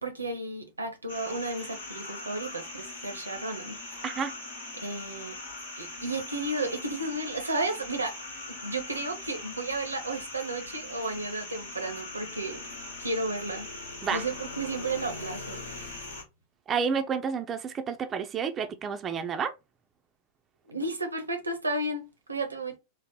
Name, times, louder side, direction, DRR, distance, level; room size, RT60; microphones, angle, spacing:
voice 1, 0.0-4.0 4.7-5.4 5.8-8.2 8.5-12.6 13.0-13.7 14.1-16.0 20.7-22.8, right 2 dB, 80° right, 0.7 m, -33 dB
sound 1, 1.1-16.2, left 2 dB, 65° left, 1.1 m, -41 dB
voice 2, 16.7-19.5, right 6 dB, 25° right, 0.4 m, -30 dB
3.8 x 2.1 x 2.8 m
figure-of-eight pair, 90°, 0 cm